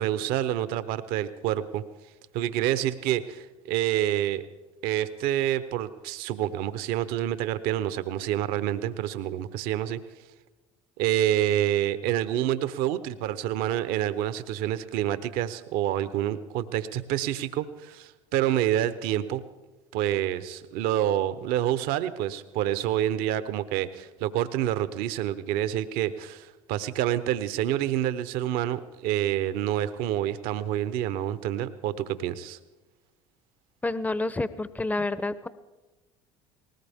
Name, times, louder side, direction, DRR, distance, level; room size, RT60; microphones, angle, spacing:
voice 1, 0.0-1.8 2.3-4.4 4.8-10.0 11.0-19.4 19.9-32.6, right 12 dB, 65° right, 14 dB, 0.9 m, -27 dB
voice 2, 33.8-35.5, left 2 dB, 10° left, 15 dB, 0.7 m, -29 dB
19.5 x 18.5 x 3.6 m, 1.1 s
hypercardioid pair, 70°, 16 cm